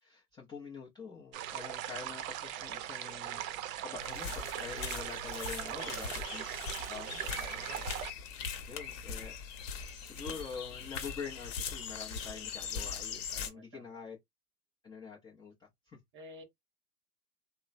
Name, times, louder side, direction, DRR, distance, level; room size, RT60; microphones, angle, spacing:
voice 1, 0.0-6.5 6.9-7.8 8.7-9.4 10.0-14.2 14.8-16.0, left 5 dB, 10° left, 0.4 m, -46 dB
sound 1, 1.3-8.1, right 12 dB, 60° right, 0.6 m, -40 dB
sound 2, 4.0-13.5, left 6 dB, 55° left, 0.9 m, -41 dB
voice 2, 5.7-6.1 7.6-7.9 13.4-14.0 16.1-16.4, right 3 dB, 25° right, 0.9 m, -50 dB
3.0 x 2.0 x 2.4 m
hypercardioid pair, 110°, 47 cm